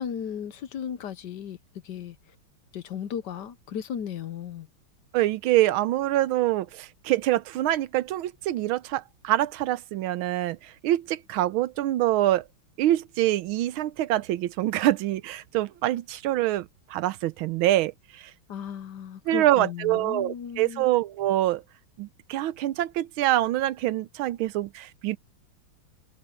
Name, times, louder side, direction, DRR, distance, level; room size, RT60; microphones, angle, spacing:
voice 1, 0.0-1.6 1.8-2.2 2.7-4.7 18.5-20.9, left 8 dB, 65° left, 1.3 m, -35 dB
voice 2, 5.1-12.4 12.8-18.3 19.3-21.6 22.0-25.2, right 14 dB, 90° right, 1.5 m, -25 dB
omnidirectional pair, 2.2 m